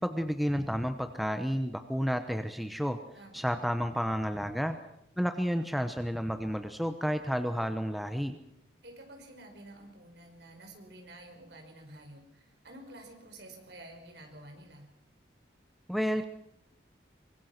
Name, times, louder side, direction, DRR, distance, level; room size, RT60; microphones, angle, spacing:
voice 1, 0.0-3.0 3.3-4.8 5.2-8.4 15.9-16.3, equal, ahead, 8 dB, 1.0 m, -31 dB
voice 2, 3.1-3.5 8.8-14.9, right 1 dB, 60° right, 4 dB, 5.5 m, -50 dB
24.0 x 23.0 x 6.0 m, 0.77 s
head